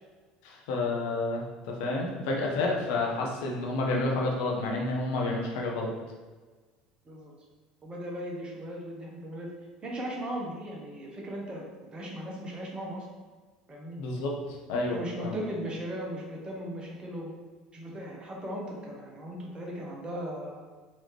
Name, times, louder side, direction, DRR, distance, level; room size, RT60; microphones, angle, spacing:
voice 1, 0.4-5.9 14.0-15.4, left 2 dB, 65° left, -1 dB, 0.9 m, -30 dB
voice 2, 7.8-9.5 9.8-11.7 11.9-13.1 13.7-14.0 14.9-17.3 17.7-20.6, equal, 25° right, -2 dB, 1.2 m, -37 dB
4.0 x 3.0 x 3.4 m, 1.3 s
figure-of-eight pair, 65°, 4 cm